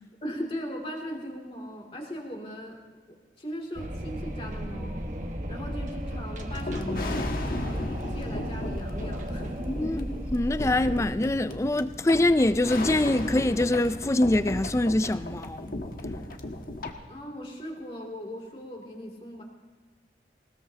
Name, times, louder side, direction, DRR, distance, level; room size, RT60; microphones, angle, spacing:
voice 1, 0.2-2.8 3.4-5.0 5.5-10.0 17.1-19.4, equal, 30° left, 2.7 m, -38 dB
Wind, 3.8-11.0, equal, 45° right, 1.5 m, -34 dB
sound 1, 6.5-16.9, left 1 dB, 55° left, 1.3 m, -35 dB
voice 2, 9.7-10.0 10.3-15.8, left 1 dB, 15° left, 0.4 m, -24 dB
20.5 x 20.0 x 2.9 m
head